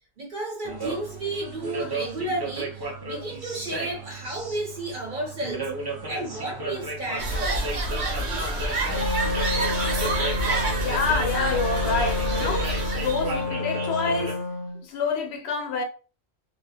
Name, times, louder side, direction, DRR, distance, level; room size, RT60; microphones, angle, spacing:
voice 1, 0.2-5.7 6.1-7.7 10.0-10.3, right 2 dB, 55° right, 0.9 m, -33 dB
sound 1, 0.6-14.3, right 2 dB, 30° right, 0.4 m, -35 dB
sound 2, 7.2-13.4, right 1 dB, 85° right, 1.0 m, -27 dB
Wind instrument woodwind instrument, 8.9-14.8, left 3 dB, 25° left, 0.5 m, -30 dB
voice 2, 10.8-14.4 14.8-15.8, left 4 dB, 75° left, 0.9 m, -27 dB
2.3 x 2.0 x 2.8 m
omnidirectional pair, 1.1 m